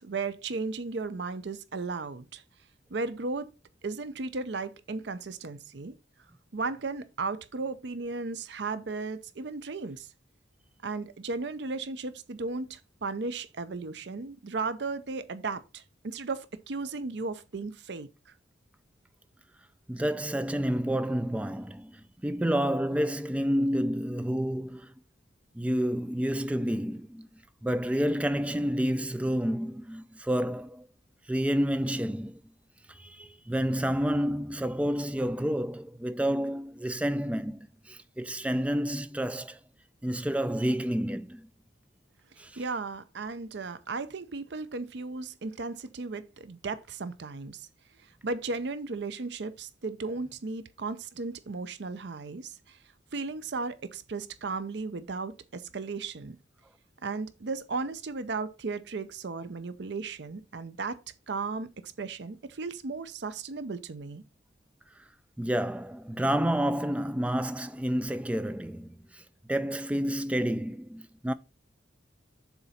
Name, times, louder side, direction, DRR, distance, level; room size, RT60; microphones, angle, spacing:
voice 1, 0.0-2.4 2.9-3.5 3.8-5.9 6.5-10.1 10.8-18.3 42.6-47.7 48.0-52.8 53.1-56.4 57.0-61.0 61.3-64.2, right 3 dB, 65° right, 0.6 m, -35 dB
voice 2, 19.9-24.9 25.6-27.3 27.6-30.9 31.3-32.4 32.9-39.6 40.0-41.5 42.4-42.6 65.4-69.2 69.5-71.3, equal, 5° right, 0.3 m, -29 dB
7.0 x 3.9 x 5.7 m
head